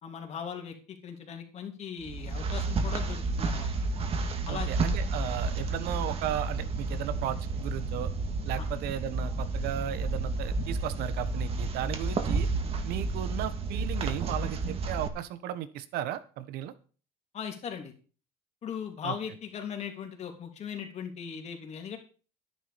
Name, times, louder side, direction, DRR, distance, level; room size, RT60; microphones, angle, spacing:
voice 1, 0.0-3.7 4.5-4.7 8.6-8.7 17.3-17.9 18.6-22.0, left 7 dB, 40° left, 4 dB, 3.3 m, -39 dB
sound 1, 2.0-15.1, right 3 dB, 35° right, 2.1 m, -31 dB
voice 2, 4.5-8.1 8.4-12.5 12.8-16.7 19.0-19.1, right 11 dB, 70° right, 13 dB, 1.4 m, -35 dB
11.5 x 10.5 x 5.3 m, 0.38 s
cardioid pair, 130°, 17 cm